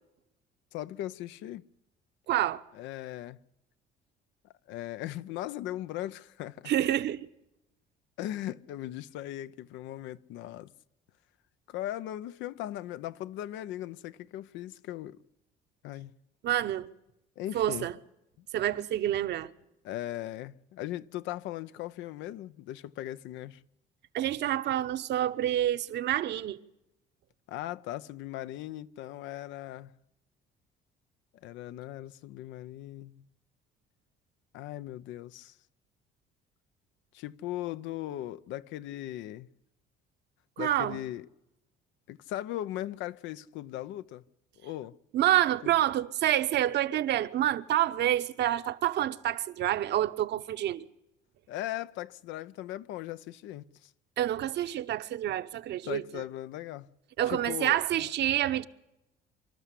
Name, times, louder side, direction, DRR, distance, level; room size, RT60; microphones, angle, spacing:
voice 1, 0.7-1.6 2.7-3.4 4.7-6.7 8.2-10.7 11.7-15.2 15.8-16.1 17.4-17.9 18.4-18.5 19.8-23.6 27.5-29.9 31.4-33.2 34.5-35.6 37.1-39.5 40.6-41.3 42.1-44.2 44.6-45.0 45.6-45.7 51.5-53.9 55.9-56.9 57.3-58.1, left 13 dB, 80° left, 0.7 m, -38 dB
voice 2, 2.3-2.6 6.7-7.3 16.4-16.9 17.5-17.9 18.5-19.5 24.1-26.6 40.6-41.0 45.1-50.9 54.2-56.0 57.2-58.7, right 12 dB, 65° right, 0.9 m, -28 dB
26.5 x 12.5 x 8.3 m
cardioid pair, 100°, 19 cm